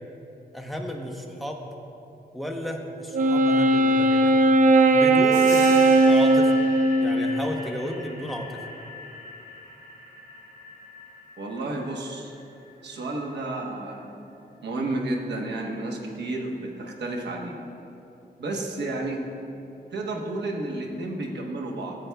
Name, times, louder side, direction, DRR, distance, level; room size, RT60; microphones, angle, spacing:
voice 1, 0.5-1.7 2.3-4.3 4.9-5.6 6.1-6.5 7.0-8.6, equal, ahead, 1 dB, 0.8 m, -33 dB
Wind instrument woodwind instrument, 3.1-7.7, right 2 dB, 50° right, 0.4 m, -18 dB
sound 1, 5.3-13.6, left 3 dB, 45° left, 1.7 m, -40 dB
voice 2, 11.4-12.3 12.8-14.1 14.6-17.5 18.4-19.2 19.9-22.0, right 2 dB, 80° right, 0 dB, 1.1 m, -31 dB
14.5 x 7.8 x 2.3 m, 2.8 s
wide cardioid pair, 115°, 17 cm